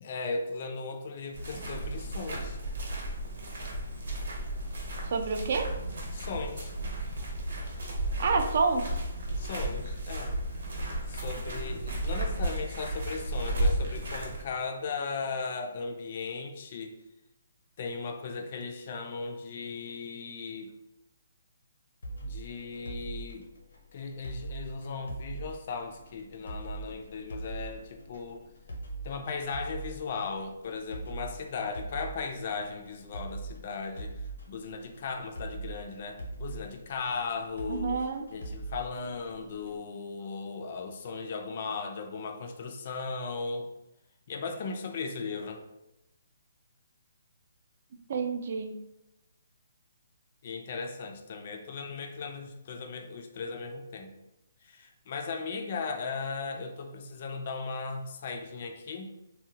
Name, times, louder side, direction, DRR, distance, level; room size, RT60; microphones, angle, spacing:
voice 1, 0.0-2.6 6.1-6.7 9.4-10.4 11.1-16.9 17.8-20.7 22.2-23.5 23.9-28.4 29.0-38.0 38.3-43.7 44.3-45.6 50.4-54.1 54.6-59.1, left 4 dB, 45° left, 4 dB, 0.3 m, -37 dB
sound 1, 1.3-14.4, right 1 dB, 70° right, 0.8 m, -33 dB
voice 2, 5.0-5.7 8.2-8.9 37.7-38.2 48.1-48.7, right 4 dB, 50° right, 5 dB, 0.3 m, -28 dB
sound 2, 22.0-39.8, right 3 dB, 85° left, 0.6 m, -42 dB
2.7 x 2.1 x 2.7 m, 0.91 s
hypercardioid pair, 160°, 0 cm